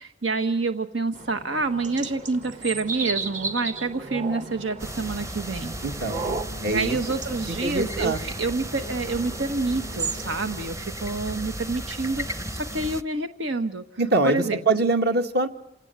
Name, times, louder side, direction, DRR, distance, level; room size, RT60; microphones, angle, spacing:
voice 1, 0.0-5.7 6.6-13.8 14.2-14.6, right 3 dB, 85° right, 8 dB, 1.2 m, -28 dB
sound 1, 1.1-10.7, right 4 dB, 40° right, 1.6 m, -35 dB
sound 2, 4.8-13.0, right 1 dB, 15° right, 0.9 m, -35 dB
voice 2, 5.8-6.2 6.6-7.0 7.5-8.2 11.1-11.6 14.0-15.5, right 2 dB, 60° right, 7 dB, 2.2 m, -24 dB
28.0 x 18.0 x 8.1 m, 0.83 s
head